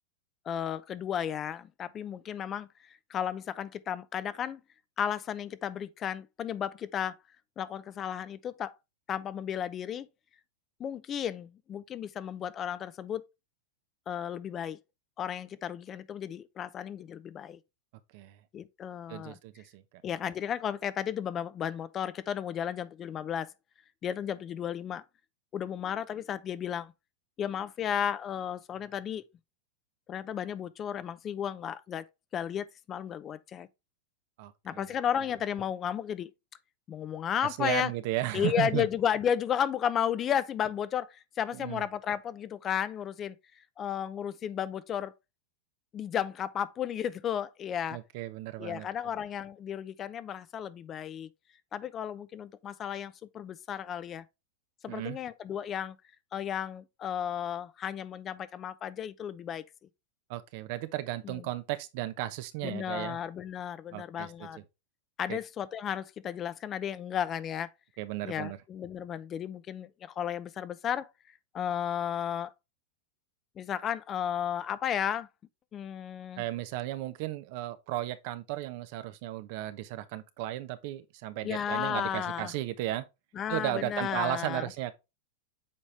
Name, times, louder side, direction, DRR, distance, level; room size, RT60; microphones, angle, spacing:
voice 1, 0.5-2.7 3.1-4.6 5.0-7.1 7.6-8.7 9.1-10.1 10.8-13.2 14.1-14.8 15.2-17.6 18.5-19.4 20.0-23.5 24.0-25.0 25.5-26.9 27.4-29.2 30.1-32.1 32.3-33.7 34.6-36.3 36.9-37.9 38.3-43.4 43.8-45.1 45.9-48.0 48.6-51.3 51.7-54.2 54.8-56.0 56.3-59.6 61.2-61.4 62.6-64.6 65.2-67.7 68.2-71.1 71.5-72.5 73.6-75.3 75.7-76.4 81.4-82.5 83.3-84.7, left 9 dB, 30° left, 0.6 m, -33 dB
voice 2, 19.1-19.8 34.4-34.9 37.4-38.9 41.5-41.8 47.9-48.9 54.9-55.2 60.3-63.2 63.9-64.5 65.3-65.4 68.0-68.6 76.4-83.0 83.5-84.9, right 15 dB, 60° right, 0.9 m, -35 dB
7.4 x 4.3 x 3.3 m
hypercardioid pair, 120°, 0 cm